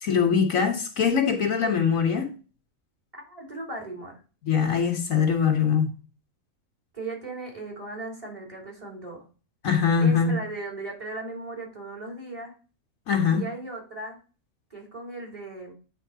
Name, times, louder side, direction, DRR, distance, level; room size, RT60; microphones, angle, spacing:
voice 1, 0.0-2.3 4.4-5.9 9.6-10.3 13.1-13.4, left 6 dB, 75° left, 1.6 m, -22 dB
voice 2, 3.2-4.2 6.9-9.2 10.0-12.5 13.3-14.2 14.7-15.7, right 2 dB, 25° right, 3.4 m, -37 dB
9.3 x 4.3 x 4.7 m
omnidirectional pair, 1.4 m